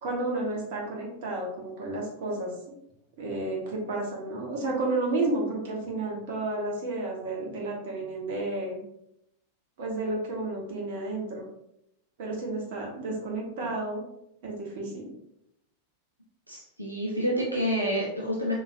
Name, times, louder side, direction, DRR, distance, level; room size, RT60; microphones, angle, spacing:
voice 1, 0.0-2.5 3.2-8.8 9.8-11.4 12.2-14.0 14.4-15.1, right 2 dB, 50° right, -2 dB, 1.3 m, -31 dB
voice 2, 16.5-18.6, equal, 85° right, -4 dB, 0.8 m, -28 dB
4.9 x 3.5 x 2.6 m, 0.81 s
figure-of-eight pair, 90°, 0 cm